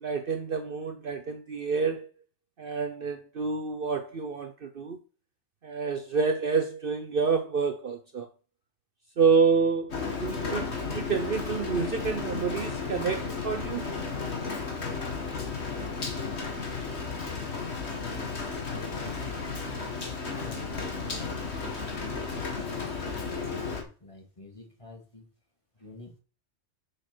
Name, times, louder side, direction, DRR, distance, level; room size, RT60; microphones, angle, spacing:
voice 1, 0.0-2.1 2.6-5.0 5.6-8.3 9.2-13.9, right 5 dB, 50° right, 0.9 m, -28 dB
Rain, 9.9-23.8, left 4 dB, 60° left, 2.0 m, -34 dB
voice 2, 18.0-18.4 18.7-22.3 22.5-25.3 25.8-26.2, left 1 dB, 25° left, 2.5 m, -47 dB
6.6 x 6.5 x 6.2 m
omnidirectional pair, 1.3 m